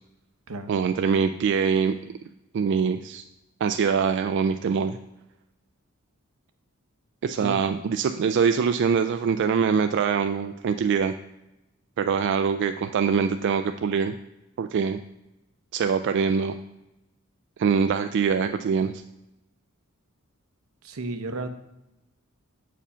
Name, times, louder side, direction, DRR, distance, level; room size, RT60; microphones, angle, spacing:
voice 1, 0.7-1.9 2.5-3.2 3.6-5.0 7.2-11.1 12.0-14.1 14.6-15.0 15.7-16.6 17.6-18.9, right 6 dB, 55° right, 8 dB, 0.3 m, -23 dB
voice 2, 20.8-21.5, right 2 dB, 80° right, 9 dB, 0.8 m, -33 dB
6.9 x 5.0 x 5.5 m, 0.91 s
head